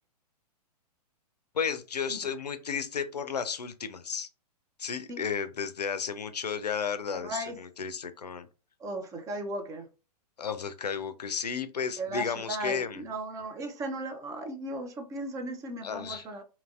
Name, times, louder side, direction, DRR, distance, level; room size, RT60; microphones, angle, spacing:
voice 1, 1.5-4.3 4.8-8.5 10.4-13.0 15.8-16.3, left 6 dB, 90° left, 0.4 m, -33 dB
voice 2, 7.1-7.6 8.8-9.9 12.0-16.4, right 1 dB, 15° right, 0.4 m, -36 dB
2.8 x 2.5 x 2.3 m
hypercardioid pair, 115°, 20 cm